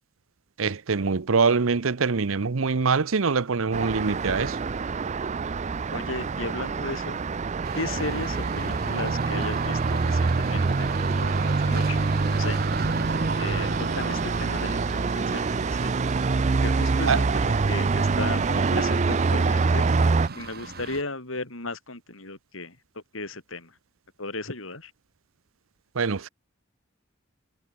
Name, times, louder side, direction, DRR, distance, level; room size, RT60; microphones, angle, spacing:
voice 1, 0.6-4.6 17.1-17.3 25.9-26.3, right 5 dB, 85° right, 0.8 m, -24 dB
Traffic noise roadway noise, 3.7-20.3, right 4 dB, 35° right, 0.5 m, -25 dB
voice 2, 5.9-7.2 7.7-12.6 13.3-15.9 16.6-19.9 20.3-23.8 24.2-24.9, left 2 dB, 80° left, 6.1 m, -36 dB
sound 1, 7.6-21.0, right 3 dB, 50° right, 5.4 m, -36 dB
head